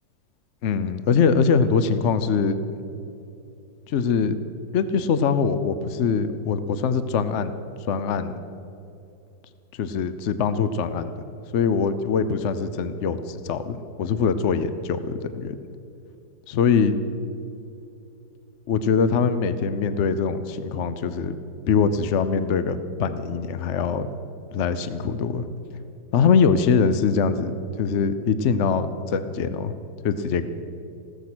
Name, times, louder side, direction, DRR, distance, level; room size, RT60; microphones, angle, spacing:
voice 1, 0.6-2.6 3.9-4.4 4.7-7.5 7.9-8.4 9.7-11.1 11.5-15.6 16.5-17.0 18.7-21.3 21.7-24.1 24.5-25.4 26.1-29.7 30.0-30.4, left 6 dB, 65° left, 12 dB, 0.7 m, -23 dB
16.0 x 13.5 x 6.2 m, 2.7 s
omnidirectional pair, 2.1 m